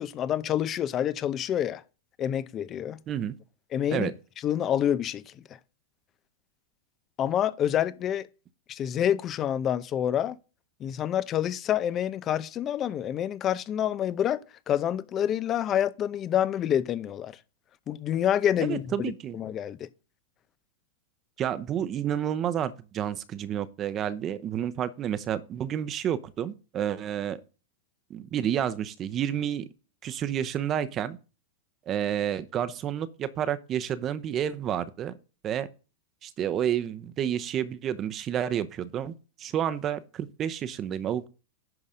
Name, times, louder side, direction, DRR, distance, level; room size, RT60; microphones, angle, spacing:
voice 1, 0.0-1.8 2.2-3.0 3.7-4.1 4.4-5.3 7.2-8.3 8.7-10.4 10.8-14.4 14.7-17.4 17.9-19.9, left 10 dB, 30° left, 0.6 m, -27 dB
voice 2, 18.6-19.4 21.4-27.4 28.1-29.7 30.0-31.2 31.9-35.1 35.4-35.7 36.2-39.1 39.4-41.3, right 9 dB, 30° right, 0.8 m, -30 dB
11.0 x 4.0 x 5.1 m
hypercardioid pair, 125°, 0 cm